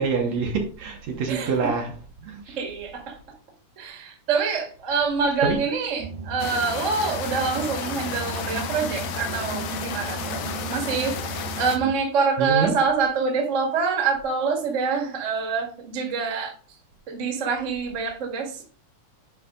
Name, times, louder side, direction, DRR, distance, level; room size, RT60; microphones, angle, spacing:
voice 1, 0.0-1.9 2.2-2.6 5.4-5.6 12.4-12.8, right 5 dB, 65° right, 2.1 m, -26 dB
voice 2, 1.3-1.7 2.6-3.2 3.8-16.5 17.1-18.6, right 5 dB, 30° right, 1.5 m, -26 dB
sound 1, 6.0-11.9, right 5 dB, 85° right, 2.5 m, -35 dB
sound 2, 6.4-11.8, left 7 dB, 70° left, 1.9 m, -32 dB
9.7 x 4.7 x 3.7 m
omnidirectional pair, 3.6 m